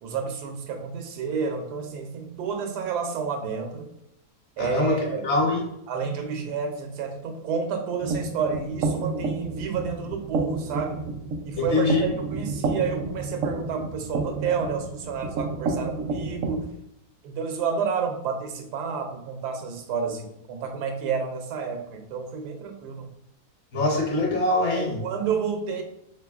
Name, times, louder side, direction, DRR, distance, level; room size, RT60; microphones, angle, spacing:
voice 1, 0.0-3.9 4.6-5.2 5.9-11.1 11.4-16.7 17.2-23.1 24.7-25.8, right 6 dB, 90° right, 4 dB, 1.2 m, -30 dB
voice 2, 4.6-4.9 5.2-5.6 11.6-12.0 23.7-25.0, left 2 dB, 55° left, 0 dB, 1.0 m, -23 dB
sound 1, 8.0-16.6, right 3 dB, 70° right, 0.8 m, -30 dB
3.8 x 2.8 x 2.3 m, 0.83 s
omnidirectional pair, 1.7 m